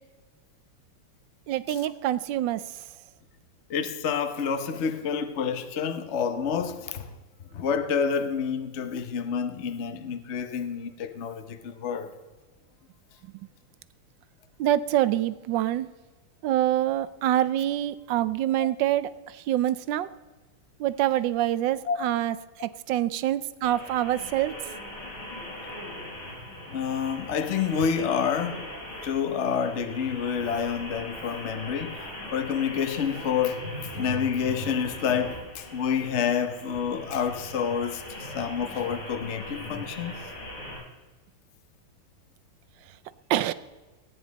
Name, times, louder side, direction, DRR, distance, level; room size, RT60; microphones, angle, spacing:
voice 1, 1.5-2.6 14.6-15.9 16.4-20.1 20.8-24.5 43.3-43.5, right 13 dB, 70° right, 1.2 m, -26 dB
voice 2, 3.7-7.1 7.5-12.1 18.6-18.7 21.9-22.0 26.7-28.6 29.0-32.0 32.3-33.6 33.9-40.2, left 7 dB, 55° left, 0.7 m, -28 dB
sound 1, 23.6-40.8, left 1 dB, 80° left, 5.9 m, -39 dB
18.5 x 9.5 x 4.0 m
omnidirectional pair, 2.3 m